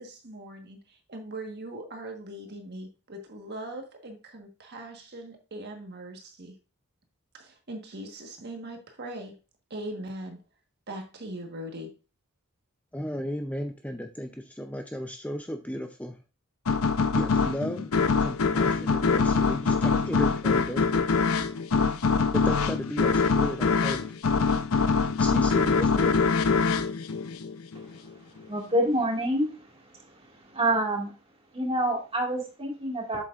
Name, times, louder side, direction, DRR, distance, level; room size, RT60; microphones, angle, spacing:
voice 1, 0.0-6.5 7.3-9.4 9.7-10.4 10.9-11.9, right 1 dB, 50° right, 4 dB, 1.4 m, -40 dB
voice 2, 12.9-16.2 17.1-21.1 22.3-24.2 25.2-26.2, equal, 5° left, 5 dB, 0.6 m, -34 dB
sound 1, 16.7-27.9, left 4 dB, 75° left, 0.7 m, -24 dB
voice 3, 28.5-29.5 30.5-31.1 31.5-33.2, right 1 dB, 25° right, 0 dB, 2.0 m, -26 dB
7.6 x 7.3 x 2.5 m, 0.31 s
head